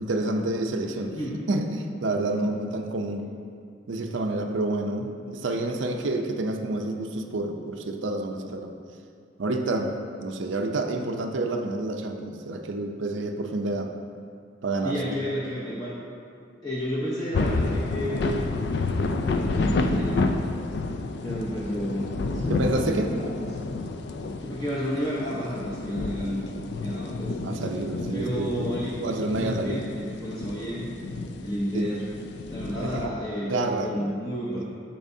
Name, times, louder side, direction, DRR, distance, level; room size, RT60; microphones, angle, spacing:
voice 1, 0.0-1.2 1.5-3.3 3.9-8.7 9.4-9.9 10.2-13.9 14.6-15.3 22.5-23.1 27.4-28.7 29.0-29.8 31.7-31.9 32.7-33.1 33.5-34.0 34.5-34.6, right 2 dB, 80° right, 4 dB, 0.6 m, -28 dB
voice 2, 14.8-16.0 16.6-18.4 19.3-20.2 21.2-23.5 24.4-26.4 26.8-27.4 28.1-28.9 29.3-30.9 31.4-32.1 32.5-33.5 33.8-34.7, equal, 20° left, -7 dB, 0.8 m, -31 dB
sound 1, 17.3-33.1, left 3 dB, 65° left, 0.4 m, -30 dB
12.5 x 4.4 x 2.7 m, 2.3 s
head